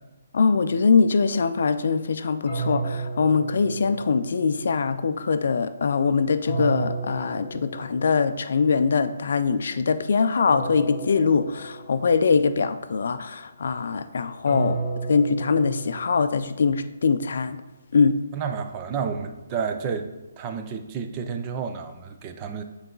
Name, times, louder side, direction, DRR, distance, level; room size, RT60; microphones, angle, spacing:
voice 1, 0.3-14.8 15.1-17.6 17.9-18.2, left 5 dB, 50° left, 11 dB, 0.4 m, -22 dB
sound 1, 2.5-4.5 6.5-8.3 10.5-12.3 14.5-16.7, right 3 dB, 25° left, 2.0 m, -32 dB
voice 2, 18.3-22.6, right 6 dB, 15° right, 7 dB, 0.3 m, -31 dB
8.2 x 4.0 x 3.8 m, 1.1 s
hypercardioid pair, 180°, 0 cm